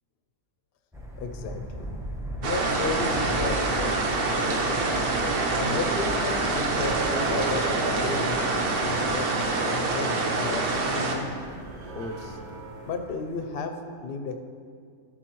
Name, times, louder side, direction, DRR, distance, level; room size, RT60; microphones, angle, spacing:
Thunder, 0.9-13.5, equal, 5° right, 0.6 m, -40 dB
voice 1, 1.2-2.0 2.4-5.0 5.6-8.4 8.8-9.3 9.6-11.3 11.9-12.4 12.9-13.8 14.0-14.4, left 4 dB, 55° left, 6 dB, 0.7 m, -34 dB
sound 1, 2.4-11.2, right 3 dB, 50° right, 0.8 m, -26 dB
sound 2, 6.7-13.0, right 2 dB, 90° right, 1.3 m, -37 dB
12.5 x 6.2 x 3.1 m, 2.2 s
omnidirectional pair, 1.6 m